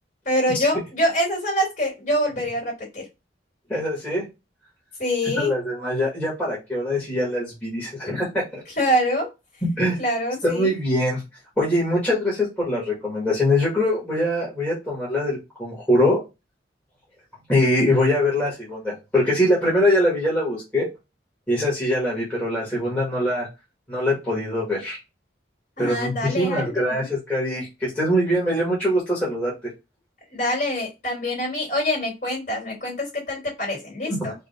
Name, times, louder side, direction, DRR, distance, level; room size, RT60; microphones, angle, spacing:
voice 1, 0.2-3.0 5.0-5.5 8.8-9.3 10.0-10.7 25.8-27.1 30.3-34.3, equal, 40° left, -2 dB, 2.6 m, -25 dB
voice 2, 3.7-4.3 5.4-8.6 9.6-10.0 10.4-11.2 11.6-16.2 17.5-20.9 21.5-23.5 23.9-25.0 25.8-29.5 34.1-34.2, left 1 dB, 10° left, -7 dB, 1.8 m, -23 dB
5.0 x 2.5 x 3.5 m, 0.24 s
head